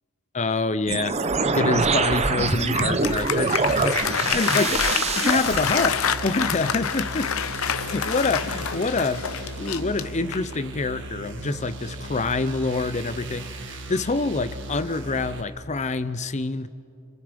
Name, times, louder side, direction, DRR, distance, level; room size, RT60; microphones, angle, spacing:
voice 1, 0.3-7.3 7.9-9.2 9.6-16.7, left 3 dB, 35° left, 13 dB, 0.7 m, -26 dB
sound 1, 0.9-5.9, right 4 dB, 30° right, 0.8 m, -24 dB
Applause, 2.5-10.6, left 7 dB, 80° left, 0.8 m, -27 dB
sound 2, 5.4-15.4, right 2 dB, 60° right, 1.6 m, -37 dB
29.0 x 26.0 x 5.3 m, 2.5 s
head